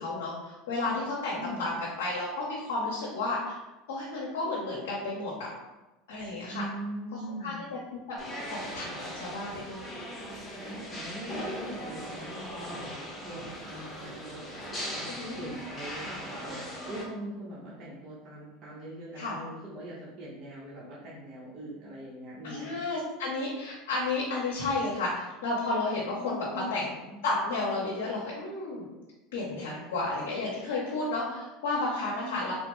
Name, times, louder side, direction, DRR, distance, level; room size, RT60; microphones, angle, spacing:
voice 1, 0.0-3.6 3.9-5.3 6.1-6.6 7.4-7.6 8.5-9.8 15.1-15.3 19.2-19.4 22.4-26.9 27.2-28.8 29.3-32.5, left 2 dB, 80° left, -4 dB, 0.7 m, -32 dB
voice 2, 1.3-1.8 6.5-7.6 10.6-22.8 26.2-27.2 32.1-32.5, right 1 dB, 40° right, -7 dB, 1.0 m, -42 dB
sound 1, 8.2-17.0, equal, 15° left, 1.0 m, -39 dB
3.2 x 2.1 x 3.0 m, 1.1 s
hypercardioid pair, 100°, 0 cm